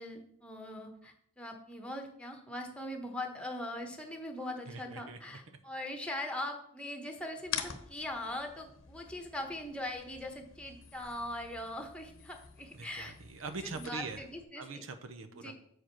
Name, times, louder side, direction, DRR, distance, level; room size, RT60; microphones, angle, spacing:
voice 1, 0.0-13.1 13.7-14.8 15.4-15.5, left 1 dB, 5° left, 4 dB, 1.1 m, -41 dB
voice 2, 4.6-5.6 12.7-14.2 14.6-15.5, right 4 dB, 90° right, 9 dB, 0.7 m, -43 dB
sound 1, 7.4-14.4, left 8 dB, 80° left, 0.9 m, -46 dB
7.7 x 5.0 x 5.8 m, 0.70 s
head